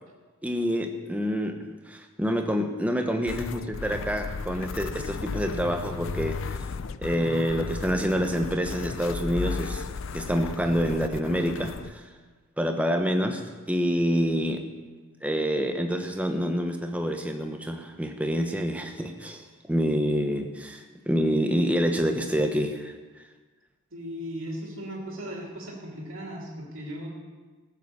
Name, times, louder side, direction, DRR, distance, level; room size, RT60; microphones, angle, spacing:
voice 1, 0.4-6.6 7.0-9.9 10.1-12.1 12.6-14.7 15.2-23.0, equal, 5° right, 5 dB, 0.9 m, -27 dB
sound 1, 3.2-11.9, left 5 dB, 60° left, 0.4 m, -34 dB
voice 2, 23.9-27.1, equal, 60° right, -2 dB, 2.6 m, -37 dB
15.0 x 8.4 x 6.7 m, 1.4 s
head